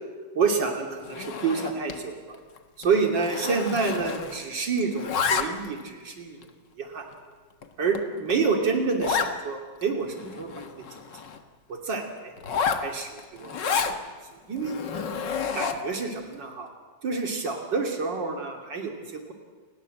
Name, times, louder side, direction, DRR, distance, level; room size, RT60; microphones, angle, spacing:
voice 1, 0.4-2.4 2.8-6.4 6.8-7.1 7.8-10.9 11.7-12.3 12.8-14.0 14.5-14.7 15.5-16.7 17.0-19.3, right 4 dB, 80° right, 2 dB, 3.5 m, -28 dB
Zipper (clothing), 1.0-2.0 2.3-2.6 2.8-4.5 4.8-5.8 6.4-6.5 7.1-7.2 7.6-7.7 7.9-8.0 8.3-8.4 9.0-9.3 9.8-9.9 10.1-11.4 12.4-14.0 14.6-16.0, left 6 dB, 80° left, 2.1 m, -30 dB
30.0 x 19.5 x 7.8 m, 1.5 s
omnidirectional pair, 1.9 m